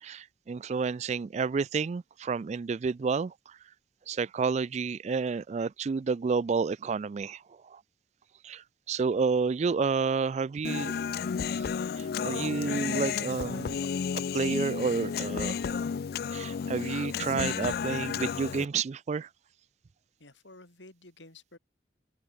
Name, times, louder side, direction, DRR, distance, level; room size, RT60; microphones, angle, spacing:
voice 1, 0.0-3.6 4.1-7.8 8.4-10.9 11.4-11.6 12.0-13.8 14.3-15.8 16.3-19.3, right 5 dB, 40° right, 0.3 m, -30 dB
Human voice, 10.6-18.7, left 6 dB, 55° left, 0.3 m, -32 dB
voice 2, 20.2-21.6, left 2 dB, 90° left, 5.1 m, -52 dB
head